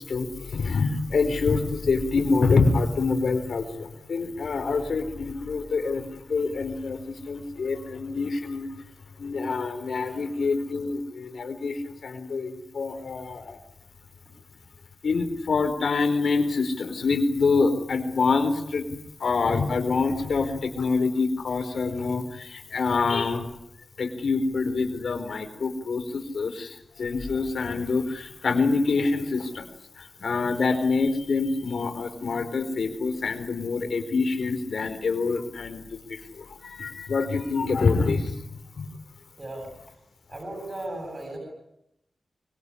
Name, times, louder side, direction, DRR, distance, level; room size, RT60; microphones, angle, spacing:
voice 1, 0.0-8.7 9.2-13.6 15.0-23.4 24.0-29.7 30.0-38.4 38.8-38.9, left 4 dB, 60° left, 8 dB, 4.5 m, -26 dB
voice 2, 39.4-39.7 40.3-41.4, right 1 dB, 30° right, 1 dB, 7.6 m, -36 dB
25.5 x 22.5 x 10.0 m, 0.81 s
wide cardioid pair, 165°, 0 cm